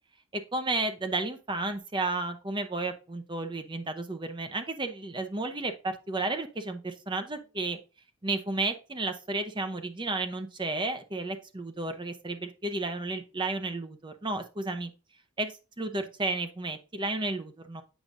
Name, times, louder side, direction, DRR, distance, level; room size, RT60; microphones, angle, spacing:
voice 1, 0.3-7.8 8.2-14.9 15.4-17.8, right 2 dB, 20° right, 8 dB, 0.7 m, -32 dB
8.2 x 4.8 x 2.5 m, 0.32 s
head